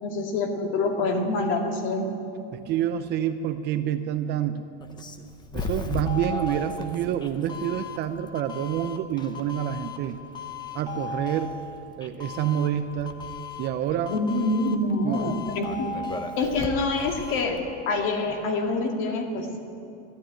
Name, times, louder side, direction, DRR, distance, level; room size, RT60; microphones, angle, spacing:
voice 1, 0.0-2.1 14.1-15.9 16.4-17.6 17.9-19.6, left 2 dB, 40° left, 3 dB, 2.2 m, -26 dB
voice 2, 2.5-4.6 4.9-5.0 5.5-10.2 10.7-11.6 12.0-13.2 13.6-14.2 15.0-15.4, right 10 dB, 35° right, 9 dB, 0.6 m, -28 dB
Doorbell, 4.8-17.6, left 3 dB, 15° left, 0.8 m, -36 dB
13.0 x 12.5 x 8.9 m, 2.6 s
supercardioid pair, 145°, 31 cm